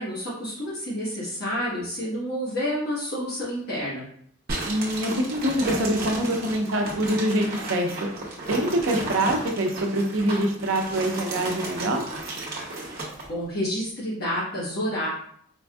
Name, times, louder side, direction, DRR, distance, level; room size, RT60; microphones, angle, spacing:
voice 1, 0.0-4.0 13.3-15.1, equal, 50° left, -7 dB, 1.3 m, -29 dB
sound 1, 4.5-13.3, right 2 dB, 45° right, 0.8 m, -34 dB
voice 2, 4.6-7.9 8.5-12.0, right 1 dB, 75° right, 3 dB, 0.6 m, -25 dB
4.4 x 2.6 x 2.3 m, 0.65 s
head